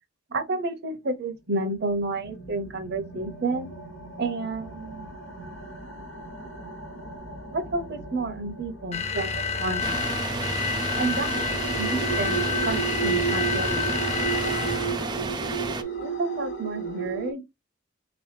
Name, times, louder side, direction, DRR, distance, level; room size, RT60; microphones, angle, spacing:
voice 1, 0.3-3.7 4.2-5.1 7.5-9.8 10.9-11.4 11.8-13.9 16.0-17.4, right 3 dB, 55° right, 0.8 m, -30 dB
sound 1, 1.6-17.3, right 6 dB, 65° left, 0.9 m, -35 dB
sound 2, 8.9-15.1, left 5 dB, 30° left, 0.5 m, -29 dB
sound 3, 9.8-15.8, right 3 dB, 20° right, 0.3 m, -31 dB
3.5 x 3.0 x 3.3 m
head